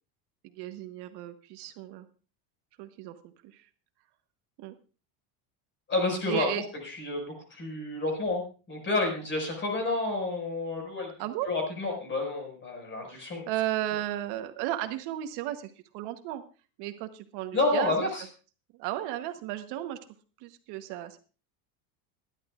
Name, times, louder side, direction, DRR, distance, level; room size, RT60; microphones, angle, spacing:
voice 1, 0.4-2.1 2.8-3.7 4.6-4.8 6.3-6.6 11.2-11.5 13.1-16.4 16.8-18.1 18.8-20.0 20.4-21.2, right 13 dB, 60° right, 8 dB, 1.1 m, -34 dB
voice 2, 5.9-11.1 11.5-13.5 17.5-18.2, left 2 dB, 25° left, 3 dB, 5.3 m, -30 dB
23.0 x 11.0 x 2.4 m, 0.35 s
cardioid pair, 160°, 45 cm